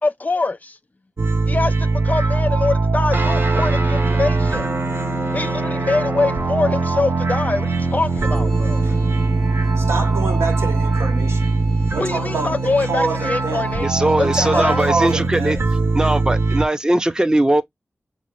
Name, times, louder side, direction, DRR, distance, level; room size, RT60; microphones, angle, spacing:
voice 1, 0.0-0.8 1.5-4.7 5.3-8.8 11.9-14.9, left 3 dB, 35° left, 0.5 m, -24 dB
sound 1, 1.2-16.6, right 3 dB, 65° right, 0.5 m, -21 dB
sound 2, 3.1-14.9, right 3 dB, 50° right, 1.0 m, -30 dB
sound 3, 8.0-15.2, left 2 dB, ahead, 0.9 m, -42 dB
voice 2, 9.8-11.5 11.9-13.7 14.2-15.6, right 3 dB, 85° right, 1.1 m, -26 dB
voice 3, 13.8-15.6 15.9-17.6, right 1 dB, 15° right, 0.5 m, -19 dB
5.7 x 2.1 x 2.9 m
cardioid pair, 45°, 5 cm